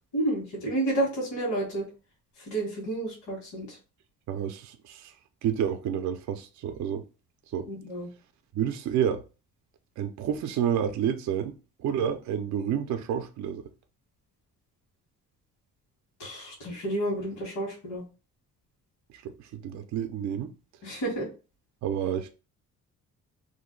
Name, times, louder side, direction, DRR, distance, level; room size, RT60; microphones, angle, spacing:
voice 1, 0.1-1.8 2.5-3.8 7.7-8.1 16.2-18.0 20.8-21.3, right 1 dB, 70° left, 1.3 m, -30 dB
voice 2, 4.3-5.1 5.4-7.0 7.5-7.7 8.5-9.2 10.0-11.5 11.8-13.6 19.1-20.5 21.8-22.3, right 9 dB, 65° right, 0.5 m, -29 dB
2.6 x 2.1 x 3.7 m
cardioid pair, 90°, 30 cm